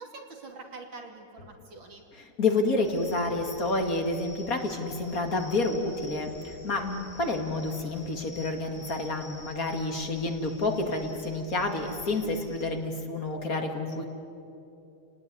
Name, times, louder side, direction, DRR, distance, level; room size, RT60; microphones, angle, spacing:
voice 1, 0.0-2.0, right 3 dB, 80° right, 2 dB, 3.6 m, -45 dB
voice 2, 2.1-14.0, left 2 dB, 45° left, 4 dB, 2.5 m, -29 dB
sound 1, 2.8-12.7, left 1 dB, 25° left, 2.2 m, -48 dB
29.5 x 18.5 x 9.7 m, 2.9 s
omnidirectional pair, 2.1 m